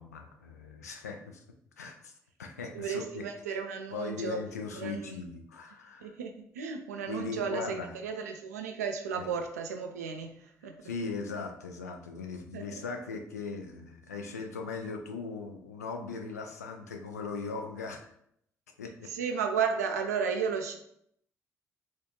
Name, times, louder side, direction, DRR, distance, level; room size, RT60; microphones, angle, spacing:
voice 1, 0.0-1.4 1.8-2.1 2.4-3.6 3.9-6.2 7.1-7.9 9.1-9.3 10.6-18.1 18.8-19.1, left 4 dB, 85° left, 3 dB, 0.4 m, -39 dB
voice 2, 2.7-4.4 4.7-5.1 6.0-10.4 10.6-10.7 12.5-12.6 19.1-20.8, right 6 dB, 80° right, 5 dB, 0.3 m, -33 dB
4.2 x 2.3 x 2.8 m, 0.71 s
figure-of-eight pair, 45°, 9 cm